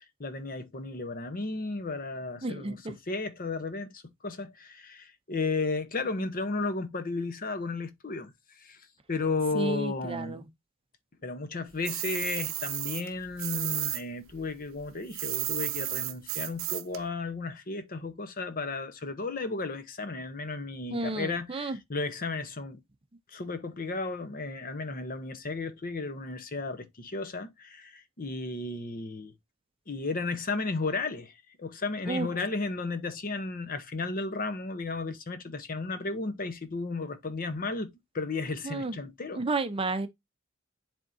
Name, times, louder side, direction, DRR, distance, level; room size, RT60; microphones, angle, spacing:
voice 1, 0.0-8.3 8.6-8.8 9.1-10.4 11.2-22.8 23.3-29.3 29.9-31.3 31.6-37.9 38.1-39.4, left 3 dB, 45° left, 0.9 m, -34 dB
voice 2, 2.4-2.9 9.5-10.5 20.9-21.8 32.1-32.3 38.6-39.0 39.3-40.1, right 3 dB, 25° right, 0.6 m, -32 dB
sound 1, 11.8-14.0 14.3-17.0, right 15 dB, 75° right, 0.7 m, -33 dB
10.5 x 3.6 x 2.7 m
head